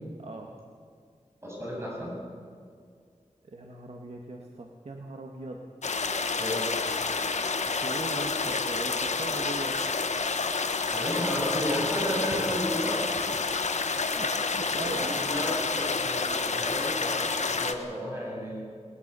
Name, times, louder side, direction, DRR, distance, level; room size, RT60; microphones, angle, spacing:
voice 1, 0.2-0.5 3.4-5.6 7.6-9.8 14.0-15.5, right 2 dB, 55° right, 1 dB, 1.8 m, -39 dB
voice 2, 1.4-2.1 6.4-6.7 10.9-13.0 14.8-18.6, equal, 20° right, -4 dB, 7.4 m, -32 dB
sound 1, 5.8-17.7, left 4 dB, 65° left, 1.2 m, -29 dB
20.5 x 20.0 x 7.0 m, 2.1 s
wide cardioid pair, 100°, 13 cm